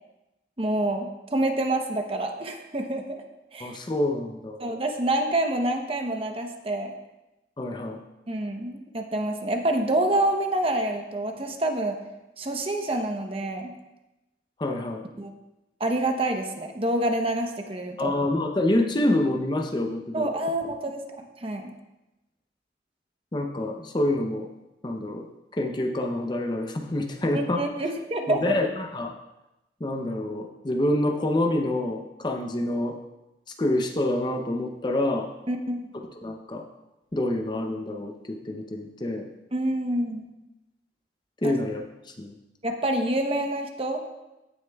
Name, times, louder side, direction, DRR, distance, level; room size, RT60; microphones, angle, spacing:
voice 1, 0.6-3.0 3.5-3.8 4.6-6.9 8.3-12.0 12.4-13.7 15.2-15.3 15.8-18.1 20.1-21.7 27.3-28.6 35.5-35.8 39.5-40.3 41.4-41.5 42.6-44.0, right 1 dB, 30° right, 4 dB, 0.8 m, -27 dB
voice 2, 3.6-4.6 7.6-8.0 14.6-15.0 18.0-20.3 23.3-24.5 24.8-25.3 25.5-27.6 28.3-29.1 29.8-33.0 33.6-35.3 36.2-36.6 37.1-39.3 41.4-41.8 42.2-42.3, left 1 dB, 25° left, 3 dB, 0.6 m, -27 dB
15.5 x 6.4 x 2.3 m, 0.98 s
head